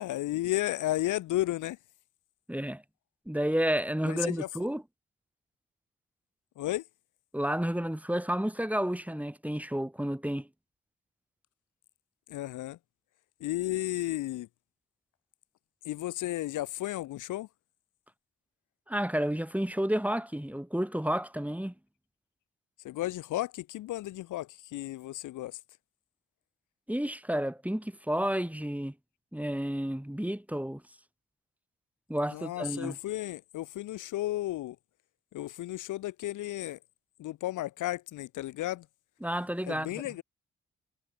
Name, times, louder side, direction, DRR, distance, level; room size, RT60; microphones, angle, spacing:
voice 1, 0.0-1.8 4.0-4.5 6.6-6.8 12.3-12.8 13.4-14.5 15.8-17.5 22.8-25.6 32.3-34.8 35.3-36.8 37.2-38.9 39.6-40.2, left 15 dB, 80° left, 5.0 m, -33 dB
voice 2, 2.5-2.8 3.3-4.8 7.3-10.5 18.9-21.7 26.9-28.9 29.3-30.8 32.1-33.0 39.2-39.9, equal, 5° right, 7.4 m, -31 dB
hypercardioid pair, 45°, 31 cm